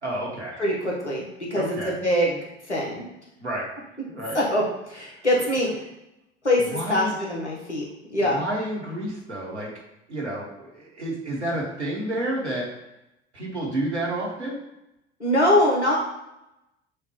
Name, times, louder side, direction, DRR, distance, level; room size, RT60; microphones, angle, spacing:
voice 1, 0.0-0.6 1.5-1.9 3.4-3.7 4.1-4.4 6.7-7.1 8.3-9.7 10.1-12.7 13.3-14.6, right 1 dB, 85° right, -4 dB, 1.1 m, -30 dB
voice 2, 0.6-2.4 2.7-3.0 4.3-5.7 6.4-7.9 8.1-8.4 15.2-16.0, left 1 dB, 90° left, -3 dB, 0.9 m, -23 dB
6.3 x 2.2 x 3.0 m, 0.89 s
figure-of-eight pair, 70°, 33 cm